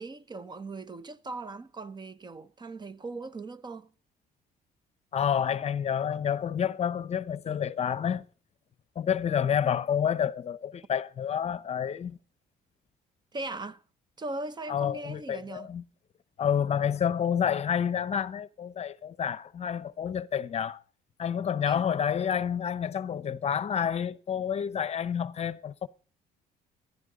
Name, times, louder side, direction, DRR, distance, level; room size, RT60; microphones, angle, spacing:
voice 1, 0.0-3.9 13.3-13.8 14.2-15.7 21.7-21.8, right 2 dB, 25° right, 0.8 m, -39 dB
voice 2, 5.1-8.2 9.0-12.2 14.7-15.8 16.4-20.8 21.2-25.9, left 8 dB, 40° left, 0.8 m, -29 dB
15.0 x 11.0 x 3.9 m
cardioid pair, 110°, 17 cm